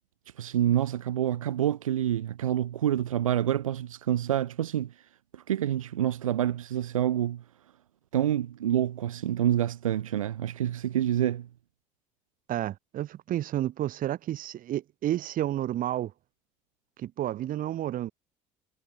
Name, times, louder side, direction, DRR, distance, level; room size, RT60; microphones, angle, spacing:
voice 1, 0.4-5.1 5.3-7.4 8.1-11.5, right 11 dB, 90° right, 0.7 m, -27 dB
voice 2, 12.5-16.1 17.0-18.1, right 13 dB, 55° right, 1.9 m, -31 dB
hypercardioid pair, 55°, 17 cm